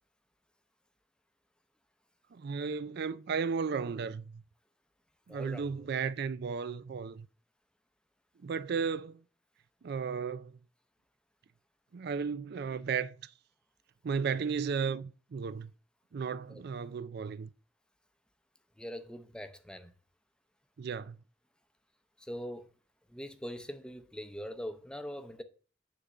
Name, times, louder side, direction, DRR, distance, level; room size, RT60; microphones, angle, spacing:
voice 1, 2.3-4.2 5.3-7.3 8.4-9.2 9.8-10.5 11.9-13.2 14.0-15.7 16.1-17.5 20.8-21.1, right 5 dB, 55° right, 0.4 m, -34 dB
voice 2, 5.3-5.9 16.5-16.6 18.8-19.9 22.2-22.7 23.1-25.4, equal, 5° left, 0.7 m, -42 dB
9.9 x 3.8 x 6.5 m
head